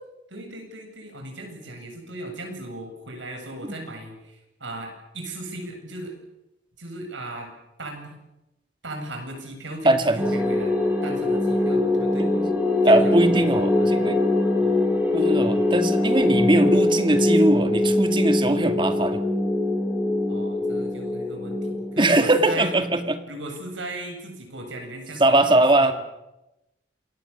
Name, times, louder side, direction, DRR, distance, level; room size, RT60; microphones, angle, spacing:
voice 1, 0.3-6.1 6.8-7.5 7.8-8.2 8.8-10.7 11.0-12.3 12.8-14.2 14.6-14.8 20.3-22.7 23.3-25.9, right 1 dB, 90° right, 4 dB, 7.9 m, -37 dB
voice 2, 9.8-10.2 12.2-12.5 12.8-14.2 15.1-19.2 22.0-23.2 25.2-25.9, right 1 dB, 25° right, 7 dB, 2.0 m, -20 dB
sound 1, 10.2-22.9, left 2 dB, 10° right, 7.2 m, -23 dB
27.5 x 22.0 x 7.3 m, 0.94 s
head